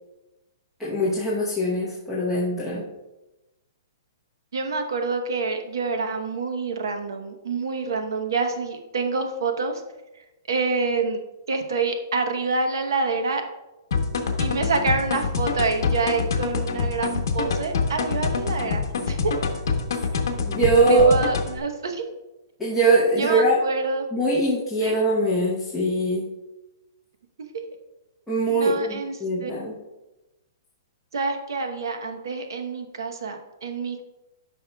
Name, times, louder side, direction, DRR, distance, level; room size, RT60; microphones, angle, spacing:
voice 1, 0.8-2.8 20.5-21.1 22.6-23.6 24.1-26.3 28.3-29.7, right 2 dB, ahead, -9 dB, 0.9 m, -22 dB
voice 2, 4.5-9.8 10.5-11.2 11.5-13.4 14.4-19.3 20.9-22.0 23.2-24.1 24.8-25.0 28.5-29.5 31.1-34.0, right 4 dB, 90° right, 5 dB, 0.9 m, -27 dB
sound 1, 13.9-21.6, left 5 dB, 65° left, 1.0 m, -26 dB
12.5 x 5.5 x 2.3 m, 1.0 s
hypercardioid pair, 180°, 2 cm